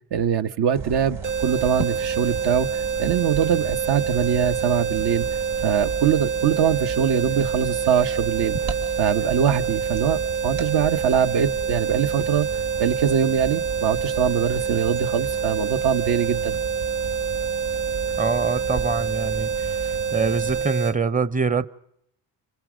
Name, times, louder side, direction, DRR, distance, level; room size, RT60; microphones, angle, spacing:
voice 1, 0.1-5.3 5.6-8.6 9.0-12.5 12.8-16.6, right 8 dB, 60° right, 1.4 m, -23 dB
sound 1, 0.7-20.6, right 5 dB, 85° right, 3.6 m, -35 dB
sound 2, 1.2-21.0, right 6 dB, 45° right, 1.2 m, -27 dB
voice 2, 18.2-21.7, right 4 dB, 20° right, 0.9 m, -25 dB
26.5 x 26.0 x 5.1 m
supercardioid pair, 70°, 44 cm